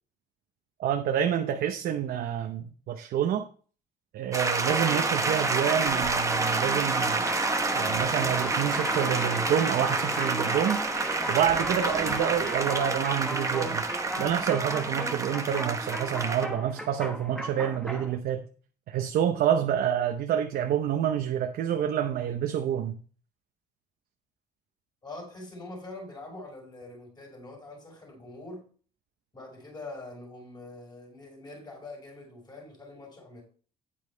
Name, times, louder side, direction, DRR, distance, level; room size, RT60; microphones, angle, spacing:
voice 1, 0.8-3.5 4.1-7.3 7.7-10.8 11.3-13.8 14.2-18.5 18.9-23.0, right 9 dB, 65° right, 0.8 m, -28 dB
sound 1, 4.3-16.5, right 3 dB, 20° right, 1.0 m, -29 dB
sound 2, 4.6-18.2, equal, 5° left, 1.1 m, -35 dB
sound 3, 5.9-14.4, left 3 dB, 55° left, 2.9 m, -49 dB
voice 2, 25.0-28.6 29.3-33.4, left 2 dB, 25° left, 4.8 m, -44 dB
9.0 x 8.4 x 3.3 m
cardioid pair, 110°, 17 cm